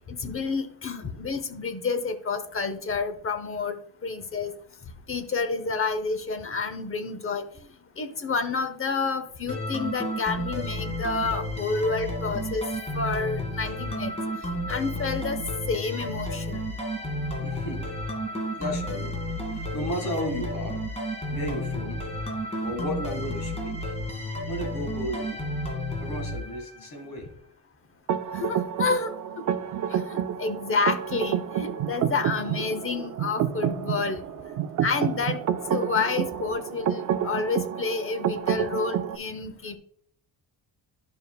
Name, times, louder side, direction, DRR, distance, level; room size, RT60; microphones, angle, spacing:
voice 1, 0.1-4.5 5.1-7.4 8.0-12.6 12.9-14.1 14.7-15.4 15.7-16.6 28.3-29.1 29.9-34.6 34.8-35.4 35.7-39.8, left 4 dB, 30° left, 9 dB, 0.7 m, -29 dB
sound 1, 9.5-27.0, equal, 15° left, 1.8 m, -32 dB
voice 2, 17.4-20.9 21.3-22.0 22.6-23.9 24.5-25.4 26.0-27.3, left 1 dB, 50° left, 4 dB, 1.9 m, -34 dB
sound 2, 28.1-39.2, right 9 dB, 45° right, 0.5 m, -29 dB
11.0 x 5.3 x 2.3 m, 0.62 s
cardioid pair, 145°, 42 cm